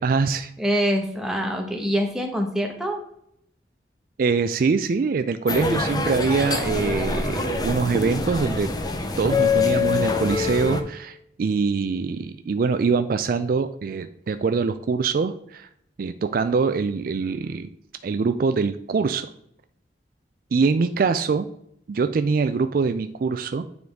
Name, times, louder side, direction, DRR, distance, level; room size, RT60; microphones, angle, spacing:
voice 1, 0.0-0.5 4.2-8.7 9.2-15.7 16.0-17.7 18.0-19.3 20.5-21.5 21.9-23.7, right 4 dB, 55° right, 10 dB, 0.3 m, -23 dB
voice 2, 0.6-3.0, equal, 5° right, 1 dB, 1.0 m, -25 dB
sound 1, 5.5-10.8, left 4 dB, 20° left, 0.6 m, -24 dB
9.3 x 3.9 x 3.5 m, 0.71 s
head